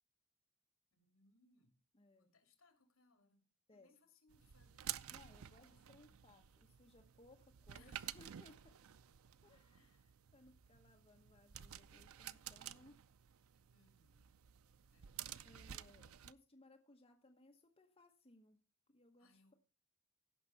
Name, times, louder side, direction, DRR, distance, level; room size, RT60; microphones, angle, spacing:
voice 1, 0.9-1.8 2.2-5.1 5.6-6.2 7.7-8.5 9.8-10.1 13.7-14.3 14.9-15.2 19.2-19.5, left 3 dB, 70° left, 6 dB, 2.8 m, -72 dB
voice 2, 1.9-2.3 3.7-3.9 5.1-8.7 9.4-10.0 10.3-13.0 14.9-15.0 15.4-18.6 18.9-19.5, left 2 dB, 25° left, 2 dB, 1.1 m, -65 dB
moving clotheshangers, 4.3-16.3, right 11 dB, 75° right, 0.5 m, -52 dB
15.5 x 5.8 x 5.7 m, 0.35 s
head